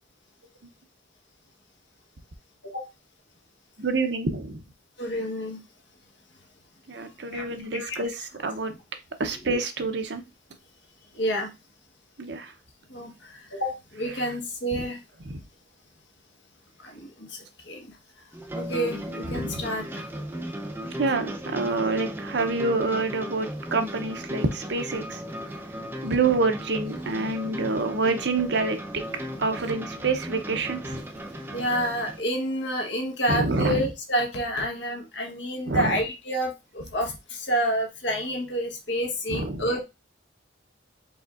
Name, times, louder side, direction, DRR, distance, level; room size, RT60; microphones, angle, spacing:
voice 1, 3.8-4.6 6.9-8.7 9.2-10.2 12.2-12.5 15.3-15.4 19.3-19.7 21.0-25.2 26.0-29.0 29.4-31.0 33.3-33.9 35.7-36.0 39.3-39.7, right 3 dB, 60° right, 0.6 m, -27 dB
voice 2, 5.0-5.6 7.3-7.4 7.7-8.0 11.1-11.5 12.9-15.0 16.8-17.9 18.5-20.1 31.5-39.8, equal, 70° left, 1.2 m, -29 dB
sound 1, 18.3-32.2, equal, 10° right, 0.5 m, -36 dB
4.9 x 3.6 x 2.4 m
head